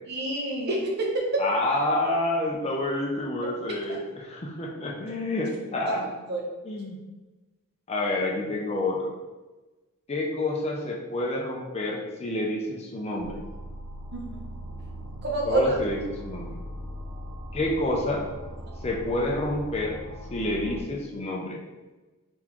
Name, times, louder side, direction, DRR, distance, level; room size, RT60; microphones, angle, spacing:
voice 1, 0.1-1.4 6.3-6.4 14.1-14.2 15.2-15.7, right 1 dB, 50° right, -1 dB, 0.9 m, -26 dB
voice 2, 1.4-6.2 6.6-7.0 7.9-9.1 10.1-13.4 15.4-16.5 17.5-18.3 18.8-20.0 20.3-21.6, left 1 dB, 30° left, -1 dB, 0.5 m, -28 dB
sound 1, 13.2-20.8, equal, 75° right, 0.6 m, -40 dB
3.9 x 3.5 x 3.0 m, 1.2 s
head